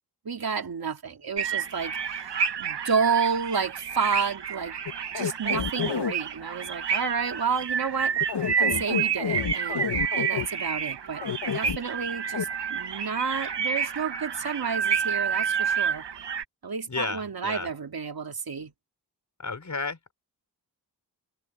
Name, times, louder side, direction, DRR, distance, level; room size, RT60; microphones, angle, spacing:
voice 1, 0.2-2.3 2.6-4.7 5.1-8.1 8.6-9.9 10.1-11.2 11.5-16.1 16.6-18.7, right 5 dB, 60° right, 2.8 m, -30 dB
sound 1, 1.4-16.4, right 7 dB, 80° right, 1.6 m, -29 dB
sound 2, 4.8-6.1 8.2-10.5 11.2-11.8 12.3-12.4, left 7 dB, 75° left, 2.0 m, -29 dB
voice 2, 16.9-17.7 19.4-20.1, left 3 dB, 45° left, 4.7 m, -32 dB
wide cardioid pair, 80°, 41 cm